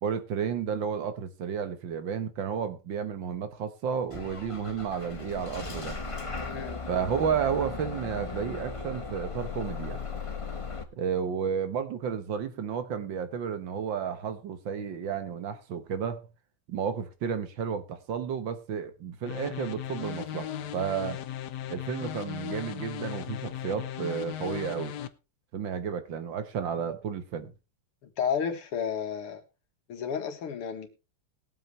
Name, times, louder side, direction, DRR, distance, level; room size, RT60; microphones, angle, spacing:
voice 1, 0.0-6.0 6.9-10.0 10.9-16.2 16.7-21.2 21.7-24.9 25.5-27.5, right 7 dB, 60° right, 1.7 m, -32 dB
Bus / Engine starting, 4.1-10.8, left 4 dB, 35° left, 0.5 m, -37 dB
voice 2, 6.5-6.8 28.2-29.4 29.9-30.9, left 7 dB, 85° left, 2.5 m, -31 dB
sound 1, 19.2-25.1, left 11 dB, 65° left, 1.1 m, -37 dB
20.5 x 7.7 x 3.2 m
omnidirectional pair, 2.4 m